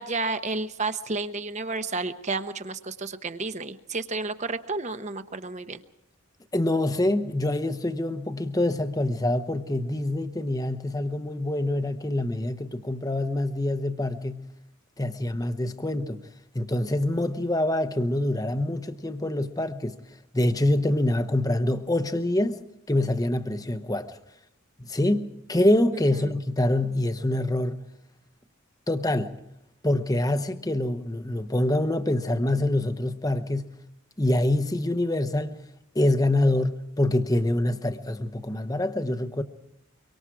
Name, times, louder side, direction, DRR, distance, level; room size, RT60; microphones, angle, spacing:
voice 1, 0.0-5.8 26.1-26.3, right 3 dB, 35° right, 1.0 m, -31 dB
voice 2, 6.5-14.4 15.0-16.2 16.5-20.0 20.3-22.6 22.9-24.1 24.9-27.8 28.9-29.3 29.8-33.7 34.2-35.6 35.9-39.4, left 1 dB, 15° left, 0.9 m, -25 dB
24.5 x 24.5 x 4.8 m
head